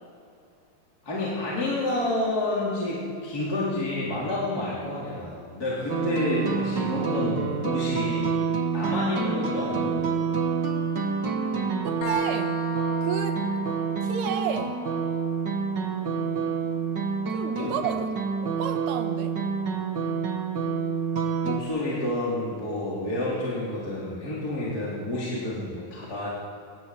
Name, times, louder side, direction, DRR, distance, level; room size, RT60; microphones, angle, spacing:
voice 1, 1.0-8.3 8.7-10.2 17.5-17.8 21.4-26.3, left 1 dB, 25° left, -7 dB, 4.3 m, -29 dB
sound 1, 5.9-21.6, right 5 dB, 45° right, 1.4 m, -28 dB
voice 2, 11.8-12.6 13.0-13.5 14.0-14.8 17.3-18.1 18.4-19.4, right 8 dB, 85° right, 7 dB, 3.4 m, -31 dB
sound 2, 12.0-19.4, left 5 dB, 75° left, 3.2 m, -40 dB
21.0 x 21.0 x 7.9 m, 2.5 s
omnidirectional pair, 4.5 m